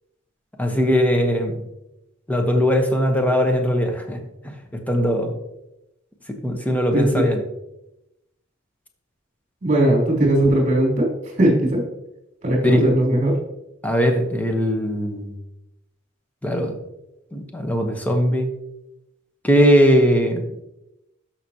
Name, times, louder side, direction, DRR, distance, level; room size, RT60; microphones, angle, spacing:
voice 1, 0.6-1.6 2.3-4.2 4.9-5.3 6.4-7.4 12.6-12.9 13.8-15.3 16.4-16.7 17.3-18.5 19.4-20.4, equal, 10° left, 4 dB, 1.1 m, -19 dB
voice 2, 6.9-7.2 9.6-11.1 11.4-11.8 12.4-13.3, right 1 dB, 40° right, -2 dB, 3.3 m, -18 dB
13.0 x 5.8 x 2.9 m, 0.90 s
head